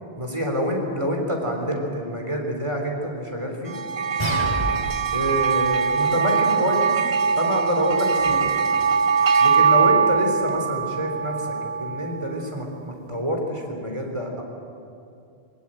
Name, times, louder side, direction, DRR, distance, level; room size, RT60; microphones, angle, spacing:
voice 1, 0.2-3.8 5.1-7.0 7.4-8.5 9.4-11.5 11.8-14.4, equal, 30° right, 2 dB, 3.6 m, -27 dB
sound 1, 3.7-12.3, right 6 dB, 85° right, 1.1 m, -22 dB
sound 2, 4.2-5.2, equal, 25° left, 2.5 m, -28 dB
21.5 x 19.5 x 8.9 m, 2.5 s
omnidirectional pair, 1.1 m